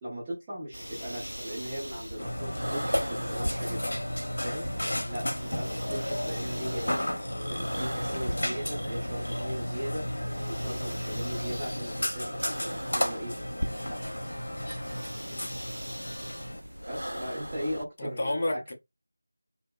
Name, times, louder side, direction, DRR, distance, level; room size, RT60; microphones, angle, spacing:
voice 1, 0.0-3.9 4.4-4.7 5.1-7.0 7.5-10.1 10.5-13.3 13.9-14.1 16.9-18.7, equal, 15° right, 0.7 m, -38 dB
sound 1, 0.7-17.9, equal, 85° right, 0.3 m, -39 dB
Burping eructation, 2.2-16.6, equal, 60° left, 0.8 m, -33 dB
voice 2, 4.8-5.1 14.9-15.7 18.0-18.7, left 1 dB, 30° left, 0.5 m, -34 dB
2.6 x 2.1 x 2.3 m
figure-of-eight pair, 170°, 0 cm